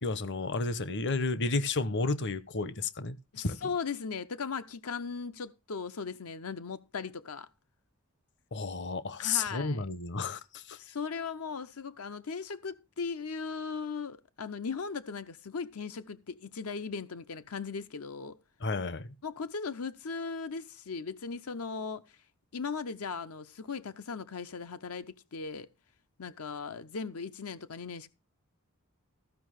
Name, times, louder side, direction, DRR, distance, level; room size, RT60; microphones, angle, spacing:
voice 1, 0.0-3.7 8.5-10.8 18.6-19.1, left 3 dB, 55° left, 0.9 m, -32 dB
voice 2, 3.3-7.5 9.2-9.9 10.8-18.4 19.2-22.2 22.5-25.7 26.2-28.1, left 5 dB, 80° left, 0.8 m, -38 dB
14.5 x 5.6 x 6.3 m
head